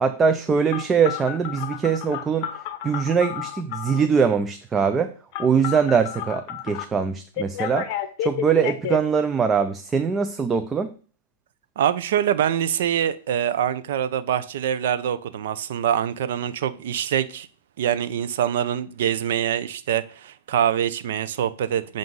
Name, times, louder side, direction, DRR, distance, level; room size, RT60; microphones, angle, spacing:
voice 1, 0.0-2.5 2.8-5.1 5.4-7.9 8.2-10.9, right 6 dB, 15° right, 0.4 m, -22 dB
Telephone, 0.7-4.1 5.3-6.8 7.4-9.0, left 10 dB, 45° left, 0.8 m, -31 dB
voice 2, 11.8-17.5 17.8-22.0, right 10 dB, 65° right, 0.5 m, -24 dB
7.7 x 2.6 x 5.4 m
hypercardioid pair, 140°, 0 cm